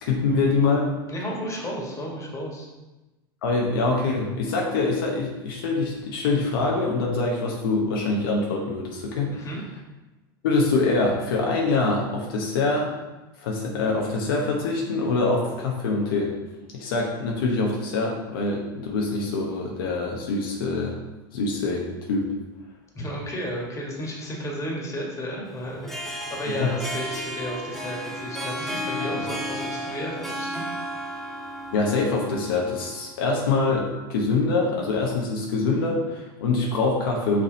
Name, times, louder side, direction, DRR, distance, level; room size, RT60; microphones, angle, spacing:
voice 1, 0.0-0.9 3.4-9.5 10.4-12.9 13.4-16.3 16.7-21.0 21.3-22.3 26.6-26.7 31.7-37.4, left 3 dB, 75° left, -1 dB, 1.1 m, -24 dB
voice 2, 1.1-2.7 9.3-9.6 22.9-30.6, equal, 25° left, -2 dB, 2.0 m, -33 dB
Harp, 25.7-33.0, equal, 5° left, 1.0 m, -33 dB
5.9 x 4.0 x 4.2 m, 1.1 s
hypercardioid pair, 90°, 12 cm